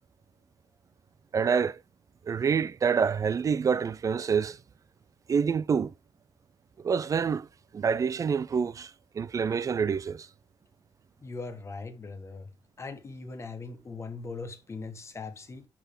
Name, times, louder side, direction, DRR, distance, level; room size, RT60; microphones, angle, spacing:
voice 1, 1.3-1.8 2.3-4.6 5.3-5.9 6.8-7.5 7.7-8.9 9.2-10.3, right 6 dB, 30° right, 0.4 m, -27 dB
voice 2, 11.2-12.5 12.8-15.7, left 3 dB, 25° left, 1.2 m, -40 dB
10.5 x 4.1 x 3.7 m
wide cardioid pair, 170°, 11 cm